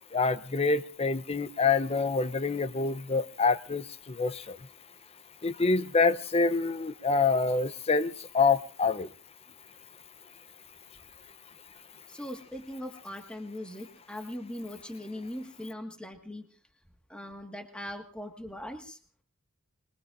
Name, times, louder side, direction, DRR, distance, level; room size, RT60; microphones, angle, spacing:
voice 1, 0.1-4.6 5.4-9.1, left 4 dB, 30° left, 13 dB, 0.7 m, -26 dB
voice 2, 12.1-16.5 17.1-19.0, left 1 dB, 5° left, 4 dB, 1.7 m, -40 dB
25.0 x 22.0 x 2.5 m, 0.40 s
head